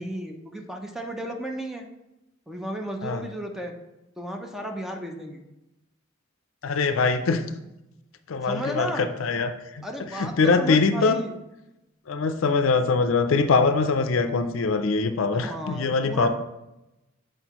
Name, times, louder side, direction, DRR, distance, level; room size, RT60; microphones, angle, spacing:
voice 1, 0.0-1.9 2.5-3.7 4.2-5.4 8.4-9.1 9.8-11.3 15.3-16.3, equal, ahead, 2 dB, 0.6 m, -34 dB
voice 2, 6.6-7.4 8.3-9.9 10.2-11.2 12.1-16.3, left 4 dB, 70° left, 9 dB, 0.5 m, -23 dB
7.8 x 4.5 x 3.0 m, 0.93 s
head